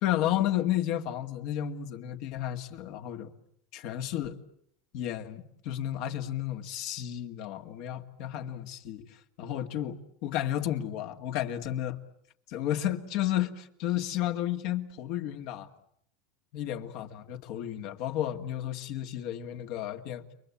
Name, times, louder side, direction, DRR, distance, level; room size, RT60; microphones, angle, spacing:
voice 1, 0.0-3.3 3.7-4.4 4.9-11.9 12.5-15.7 16.5-20.2, left 12 dB, 65° left, 2.2 m, -32 dB
29.5 x 23.5 x 8.5 m
hypercardioid pair, 100°, 0 cm